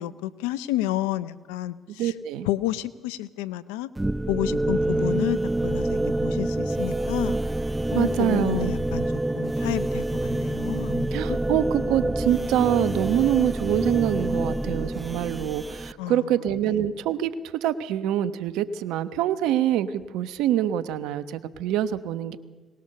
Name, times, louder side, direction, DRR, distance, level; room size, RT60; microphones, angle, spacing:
voice 1, 0.0-2.1 2.4-3.9 4.3-7.4 7.9-9.1 9.3-11.4 16.0-16.3, left 14 dB, 90° left, 16 dB, 0.7 m, -30 dB
voice 2, 2.0-2.5 7.9-8.7 11.1-22.4, right 11 dB, 80° right, 12 dB, 1.0 m, -25 dB
sound 1, 4.0-15.9, right 1 dB, 15° right, 0.7 m, -27 dB
22.5 x 19.5 x 6.7 m, 1.3 s
hypercardioid pair, 55°, 0 cm